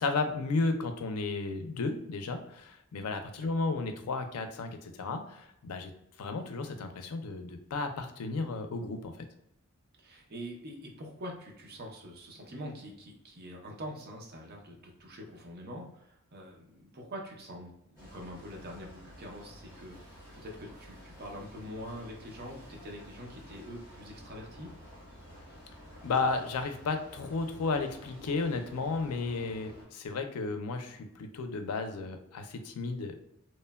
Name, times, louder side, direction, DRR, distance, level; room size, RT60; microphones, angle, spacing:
voice 1, 0.0-5.9 6.2-9.3 26.0-33.1, left 3 dB, 85° left, 7 dB, 0.4 m, -33 dB
voice 2, 10.0-24.7, equal, 45° right, 0 dB, 0.6 m, -44 dB
sound 1, 18.0-29.9, equal, 10° right, 1.3 m, -51 dB
3.0 x 2.1 x 2.2 m, 0.78 s
head